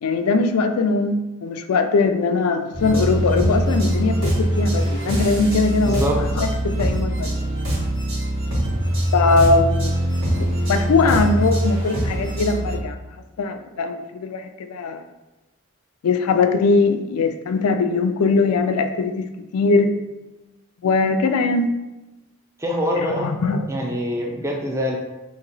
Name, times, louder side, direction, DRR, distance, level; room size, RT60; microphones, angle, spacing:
voice 1, 0.0-7.3 9.1-9.9 10.7-13.0 13.4-15.0 16.0-20.0 20.8-21.8 23.0-23.7, left 3 dB, 90° left, 8 dB, 0.4 m, -20 dB
sound 1, 2.7-12.8, right 1 dB, 60° right, 1.5 m, -22 dB
voice 2, 5.8-6.2 22.6-23.3 23.7-25.0, equal, 15° right, 0 dB, 0.4 m, -24 dB
2.9 x 2.9 x 4.0 m, 1.0 s
head